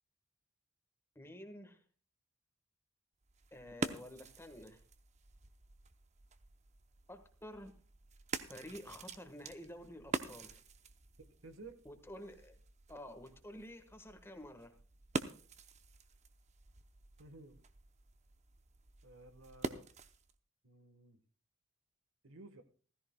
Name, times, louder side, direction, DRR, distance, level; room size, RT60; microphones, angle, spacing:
voice 1, 1.1-1.8 3.5-4.8 7.1-7.8 8.5-10.6 11.8-12.6 12.9-14.7, left 1 dB, 10° left, 1.4 m, -50 dB
sound 1, 3.2-20.4, right 3 dB, 35° right, 0.8 m, -46 dB
voice 2, 11.2-11.8 17.2-17.6 19.0-19.9 20.6-21.2 22.2-22.6, right 2 dB, 70° right, 1.4 m, -55 dB
16.5 x 15.0 x 2.3 m
head